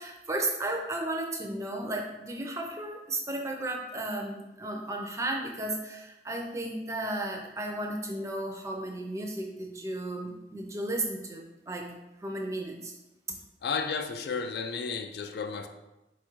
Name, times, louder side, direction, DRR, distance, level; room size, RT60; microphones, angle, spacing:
voice 1, 0.0-11.9 12.2-12.9, right 1 dB, 15° right, 2 dB, 0.4 m, -34 dB
voice 2, 13.6-15.7, left 5 dB, 65° left, 7 dB, 0.3 m, -32 dB
4.2 x 2.4 x 4.5 m, 0.98 s
head